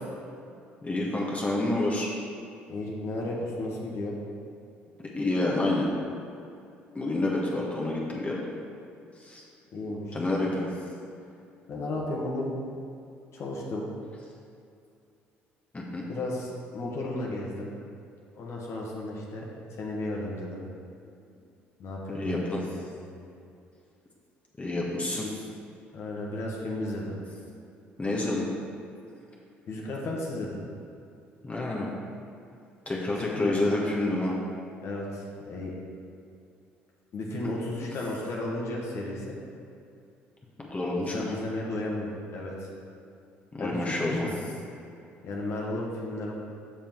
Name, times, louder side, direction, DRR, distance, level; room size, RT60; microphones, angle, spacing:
voice 1, 0.8-2.1 5.2-5.9 6.9-8.4 9.2-9.4 10.1-10.7 15.7-16.0 22.1-22.6 24.6-25.3 28.0-28.4 31.4-31.9 32.8-34.3 37.8-37.9 40.7-41.4 43.5-44.3, left 2 dB, 25° left, -3 dB, 1.4 m, -28 dB
voice 2, 2.7-4.1 9.7-10.2 11.7-12.5 13.3-13.9 16.0-17.7 18.3-19.5 19.8-20.6 21.8-22.9 25.9-27.2 29.7-30.6 33.2-33.6 34.8-35.7 37.1-39.4 40.9-42.7 43.6-44.4 45.2-46.3, left 1 dB, 55° left, -3 dB, 1.4 m, -34 dB
7.3 x 5.4 x 4.6 m, 2.5 s
hypercardioid pair, 60°, 6 cm